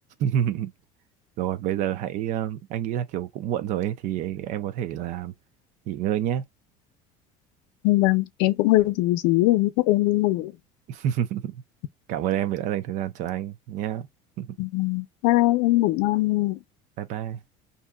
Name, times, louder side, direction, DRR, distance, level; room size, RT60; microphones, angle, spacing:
voice 1, 0.2-0.7 1.4-5.3 5.9-6.4 10.9-11.6 12.1-14.1 14.4-14.6 17.0-17.4, right 10 dB, 55° right, 0.5 m, -28 dB
voice 2, 7.8-10.5 14.6-16.6, left 18 dB, 80° left, 0.5 m, -21 dB
2.7 x 2.2 x 3.6 m
cardioid pair, 160°, 15 cm